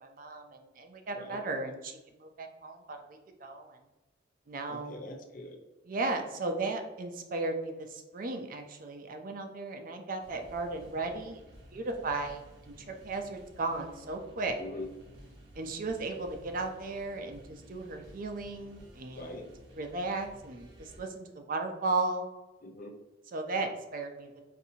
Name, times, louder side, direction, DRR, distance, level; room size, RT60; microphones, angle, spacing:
voice 1, 0.0-3.8 4.5-5.0 5.9-11.4 11.7-12.7 13.0-14.5 15.6-19.4 19.8-22.3 23.3-24.3, right 3 dB, 45° right, 5 dB, 0.4 m, -35 dB
voice 2, 4.7-5.6 14.6-14.9 19.1-19.5 22.6-22.9, left 2 dB, 45° left, 4 dB, 0.5 m, -42 dB
sound 1, 10.2-21.0, equal, 85° right, 0.9 m, -54 dB
4.1 x 2.6 x 2.7 m, 1.1 s
head